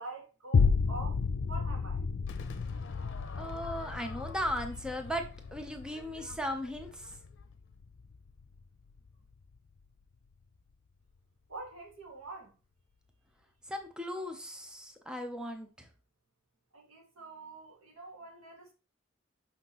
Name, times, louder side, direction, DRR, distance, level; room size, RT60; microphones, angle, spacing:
voice 1, 0.0-2.0 11.5-12.6 16.7-18.7, right 3 dB, 90° right, 2.0 m, -46 dB
sound 1, 0.5-9.1 9.6-9.7, left 5 dB, 75° left, 0.4 m, -33 dB
Crowd / Fireworks, 2.3-7.5, left 4 dB, 60° left, 0.8 m, -49 dB
voice 2, 3.4-7.1 13.7-15.9, equal, 5° right, 0.8 m, -37 dB
6.3 x 5.8 x 3.0 m
head